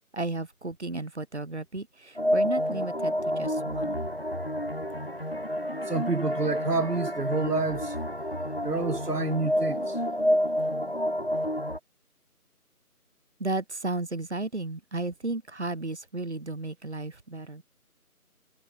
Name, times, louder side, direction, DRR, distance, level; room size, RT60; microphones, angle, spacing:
voice 1, 0.1-4.1 13.4-17.6, right 2 dB, 50° right, 0.7 m, -34 dB
sound 1, 2.2-11.8, equal, 40° left, 0.6 m, -29 dB
voice 2, 5.9-8.0 8.6-10.0, right 3 dB, 85° right, 1.6 m, -28 dB
figure-of-eight pair, 170°, 46 cm